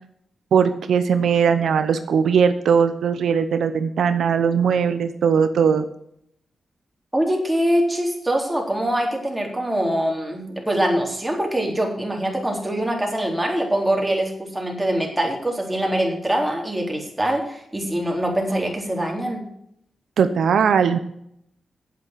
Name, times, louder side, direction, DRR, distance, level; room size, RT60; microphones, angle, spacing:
voice 1, 0.5-5.8 20.2-21.0, right 7 dB, 90° right, 10 dB, 0.8 m, -19 dB
voice 2, 7.1-19.4, right 1 dB, 10° right, 0 dB, 3.8 m, -23 dB
9.4 x 8.0 x 7.4 m, 0.72 s
cardioid pair, 90°, 0 cm